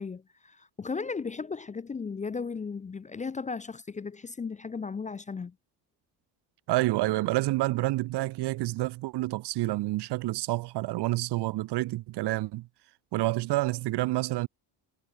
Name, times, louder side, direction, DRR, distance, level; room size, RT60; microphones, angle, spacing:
voice 1, 0.0-5.5, left 5 dB, 15° left, 0.6 m, -36 dB
voice 2, 6.7-12.7 13.1-14.5, right 18 dB, 60° right, 0.8 m, -28 dB
cardioid pair, 155°, 47 cm